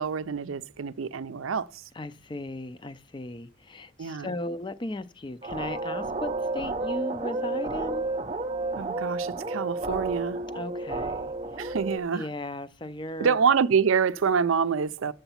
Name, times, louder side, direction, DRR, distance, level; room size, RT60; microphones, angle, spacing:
voice 1, 0.0-1.8 4.0-4.3 8.8-10.4 11.6-12.3 13.2-15.1, right 6 dB, 80° right, 0.5 m, -26 dB
voice 2, 1.9-8.1 10.5-11.8 12.1-13.4, left 1 dB, 25° left, 0.4 m, -36 dB
sound 1, 5.4-12.0, right 2 dB, 30° right, 0.5 m, -31 dB
7.9 x 7.0 x 5.7 m
head